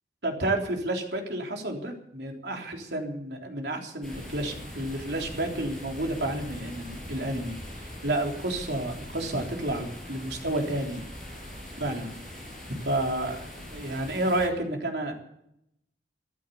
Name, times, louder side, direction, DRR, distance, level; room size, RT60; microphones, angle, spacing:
voice 1, 0.2-11.0 11.8-12.1 12.8-13.4 13.7-15.1, right 1 dB, 75° right, 2 dB, 3.6 m, -30 dB
sound 1, 4.0-14.5, left 1 dB, 5° left, 5.7 m, -41 dB
14.0 x 12.0 x 8.3 m, 0.76 s
head